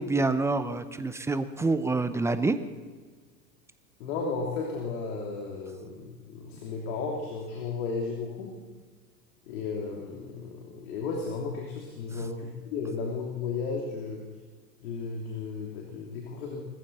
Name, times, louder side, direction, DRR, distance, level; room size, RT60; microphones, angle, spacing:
voice 1, 0.0-2.6 12.1-12.2, right 3 dB, 5° right, 12 dB, 0.6 m, -27 dB
voice 2, 4.0-8.5 9.5-14.2 14.8-16.6, left 4 dB, 60° left, -1 dB, 3.1 m, -34 dB
20.5 x 14.5 x 4.2 m, 1.4 s
hypercardioid pair, 105°, 48 cm